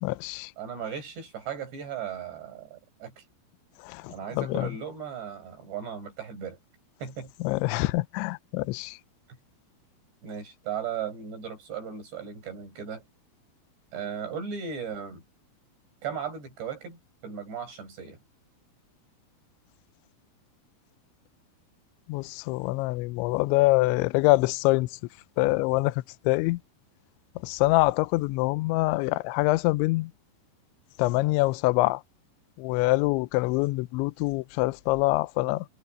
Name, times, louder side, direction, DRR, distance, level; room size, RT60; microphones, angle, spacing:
voice 1, 0.0-0.5 4.0-4.7 7.4-8.9 22.1-24.9 25.4-25.9 26.3-26.6 27.4-30.1 31.0-32.0 32.6-35.6, left 21 dB, 90° left, 2.6 m, -25 dB
voice 2, 0.6-3.2 4.1-6.6 7.0-7.3 10.2-13.0 13.9-15.2 16.0-18.2, right 7 dB, 55° right, 9.1 m, -36 dB
omnidirectional pair, 6.0 m